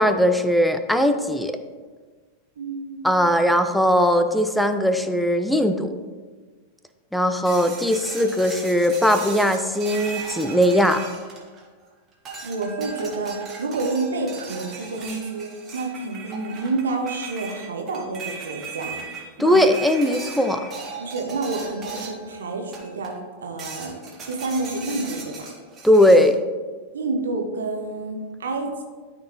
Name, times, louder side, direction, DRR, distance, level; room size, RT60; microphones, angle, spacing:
voice 1, 0.0-1.6 3.0-5.9 7.1-11.0 19.4-20.7 25.8-26.4, equal, ahead, 8 dB, 0.5 m, -19 dB
voice 2, 2.6-3.1 12.4-19.0 19.4-19.6 20.9-23.2 23.4-24.0 24.3-25.5 26.9-28.8, right 3 dB, 65° right, 3 dB, 1.0 m, -29 dB
sound 1, 7.4-11.8 12.3-22.3 22.7-23.2 23.6-26.3, right 4 dB, 25° right, 1.6 m, -37 dB
12.5 x 4.3 x 3.0 m, 1.4 s
figure-of-eight pair, 90°, 0 cm